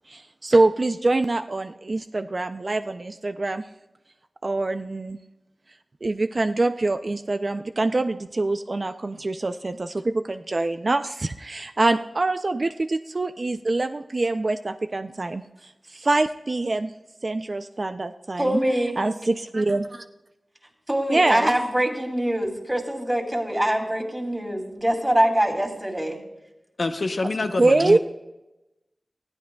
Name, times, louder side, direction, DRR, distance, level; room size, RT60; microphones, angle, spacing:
voice 1, 0.1-3.6 4.4-5.2 6.0-15.4 15.9-16.9 17.2-18.6 19.0-20.0 21.1-21.5 27.6-28.0, right 2 dB, 55° right, 8 dB, 0.4 m, -24 dB
voice 2, 18.4-19.0 19.6-19.8 20.9-26.2, right 1 dB, 15° right, 2 dB, 2.6 m, -24 dB
voice 3, 26.8-28.0, left 3 dB, 70° left, 7 dB, 0.7 m, -26 dB
19.5 x 14.0 x 2.3 m, 0.98 s
cardioid pair, 45°, 0 cm